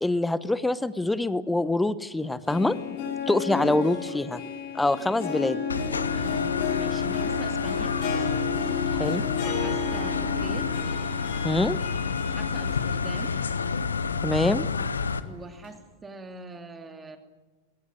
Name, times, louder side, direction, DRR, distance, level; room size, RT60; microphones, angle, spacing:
voice 1, 0.0-2.8 3.3-4.4 4.7-5.6 8.9-9.3 11.4-11.8 14.2-14.7, left 2 dB, 5° left, 17 dB, 1.0 m, -25 dB
Harp, 2.2-14.3 14.7-14.8 15.6-15.7, left 6 dB, 50° left, 6.6 m, -33 dB
voice 2, 3.5-3.8 6.1-7.9 9.4-10.7 12.4-13.3 15.2-17.2, right 2 dB, 15° right, 6 dB, 2.6 m, -41 dB
sound 1, 5.7-15.2, left 5 dB, 75° left, 1.0 m, -29 dB
22.0 x 18.0 x 9.5 m, 1.2 s
figure-of-eight pair, 90°, 0 cm